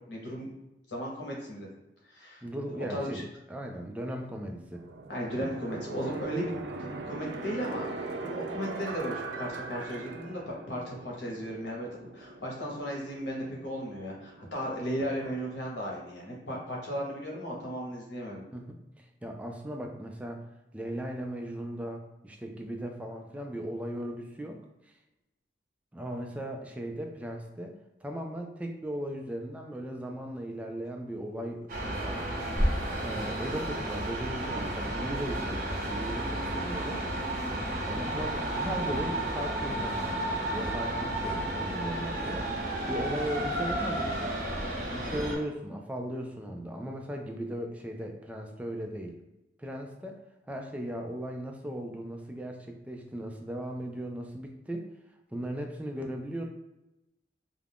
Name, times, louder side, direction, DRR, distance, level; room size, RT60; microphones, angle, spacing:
voice 1, 0.1-0.5 0.9-1.7 2.1-2.4 2.9-3.2 5.1-11.9 12.1-18.4 38.0-38.1, equal, 85° left, -3 dB, 0.9 m, -36 dB
voice 2, 2.4-4.8 18.5-20.4 20.7-24.6 25.9-27.7 28.0-32.3 33.0-37.0 37.8-42.5 42.9-49.2 49.6-54.9 55.3-56.4, right 1 dB, 10° right, 2 dB, 0.3 m, -37 dB
sound 1, 4.7-15.4, right 3 dB, 85° right, 0.4 m, -41 dB
sound 2, 31.4-31.6 31.9-34.5 34.8-36.9 37.5-39.8 40.4-40.7, equal, 30° left, 0.9 m, -36 dB
sound 3, 31.7-45.4, right 1 dB, 50° right, 0.8 m, -32 dB
2.4 x 2.2 x 3.4 m, 0.95 s
head